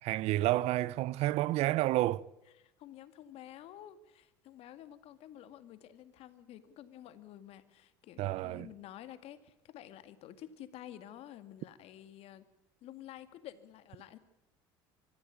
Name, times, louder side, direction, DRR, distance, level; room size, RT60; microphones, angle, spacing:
voice 1, 0.0-2.2 8.2-8.7, right 16 dB, 60° right, 0.8 m, -30 dB
voice 2, 2.6-12.4 12.8-14.2, left 12 dB, 60° left, 2.2 m, -50 dB
24.5 x 15.0 x 8.6 m
hypercardioid pair, 70°, 12 cm